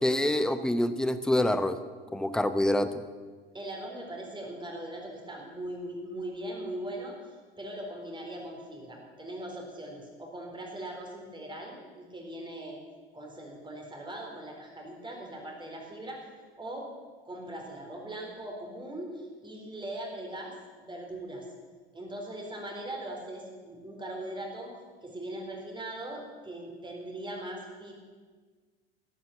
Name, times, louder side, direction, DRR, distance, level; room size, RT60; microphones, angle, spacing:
voice 1, 0.0-1.8 2.1-2.9, left 1 dB, ahead, 11 dB, 0.8 m, -26 dB
voice 2, 3.5-12.8 13.1-16.2 16.6-16.9 17.2-20.5 20.8-21.5 21.9-24.7 25.0-27.9, right 1 dB, 15° right, 0 dB, 4.1 m, -40 dB
13.5 x 10.0 x 7.2 m, 1.5 s
figure-of-eight pair, 70°, 30 cm